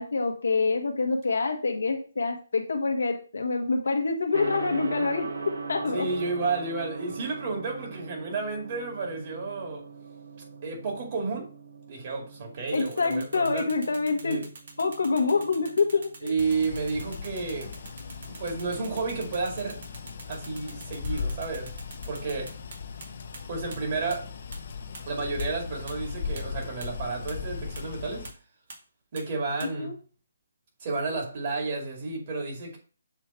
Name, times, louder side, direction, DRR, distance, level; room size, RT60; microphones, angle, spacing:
voice 1, 0.0-5.3 5.7-6.1 12.7-14.4 14.8-16.3 29.6-30.0, left 4 dB, 80° left, 1.3 m, -26 dB
Gong, 4.3-23.3, right 3 dB, 80° right, 1.0 m, -42 dB
voice 2, 5.9-9.8 10.6-11.5 11.9-13.7 14.2-14.5 16.2-17.7 18.3-19.8 20.3-21.7 22.0-22.6 23.5-24.3 25.1-28.3 29.1-29.9 30.8-32.8, right 4 dB, 40° right, 2.4 m, -31 dB
sound 1, 12.7-23.1 23.3-23.4 23.7-23.8 24.1-24.2 24.5-24.6 24.9-25.0 25.4-25.5 25.9-26.0 26.4-26.5 26.8-26.9 27.3-27.4 27.8-27.9 28.2-28.3 28.7-28.8 29.2-29.3 29.6-29.7, right 3 dB, 60° right, 1.9 m, -44 dB
sound 2, 16.4-28.3, left 5 dB, 50° left, 0.8 m, -38 dB
7.3 x 3.3 x 4.4 m
hypercardioid pair, 155°, 0 cm